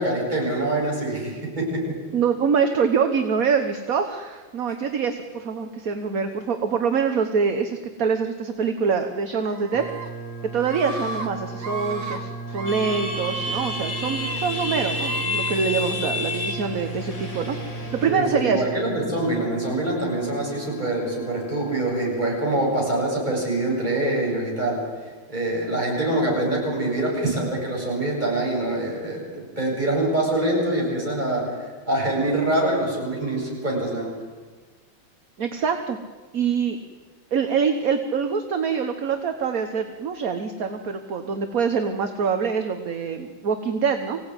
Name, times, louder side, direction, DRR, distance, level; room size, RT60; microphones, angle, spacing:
voice 1, 0.0-1.8 18.0-24.8 25.3-34.1, right 1 dB, 20° right, -3 dB, 8.3 m, -25 dB
voice 2, 2.1-9.8 10.5-18.6 35.4-36.0 36.3-36.8 37.3-44.2, right 6 dB, 45° right, 6 dB, 1.5 m, -25 dB
Screaming, 9.5-10.1 10.6-11.3 11.6-12.2 12.5-14.4 14.9-15.6, right 3 dB, 85° right, 3.7 m, -35 dB
sound 1, 9.7-22.1, right 3 dB, 10° left, 5.4 m, -35 dB
sound 2, 12.7-18.1, left 3 dB, 35° left, 6.0 m, -30 dB
25.0 x 17.5 x 9.8 m, 1.4 s
omnidirectional pair, 2.3 m